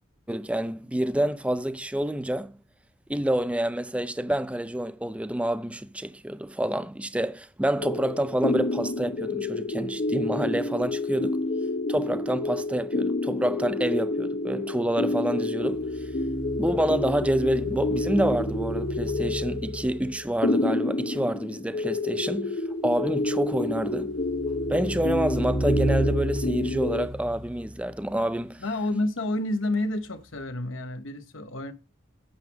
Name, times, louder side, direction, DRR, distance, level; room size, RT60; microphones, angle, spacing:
voice 1, 0.3-2.5 3.1-11.4 11.9-16.1 16.6-24.1 24.7-28.6, right 1 dB, 5° right, 0.4 m, -28 dB
sound 1, 7.8-27.1, left 2 dB, 45° left, 0.8 m, -29 dB
sound 2, 15.6-20.3 23.6-28.2 30.3-30.4, right 1 dB, 75° right, 1.8 m, -33 dB
voice 2, 28.6-31.7, left 1 dB, 70° left, 1.0 m, -29 dB
9.0 x 7.1 x 3.5 m
head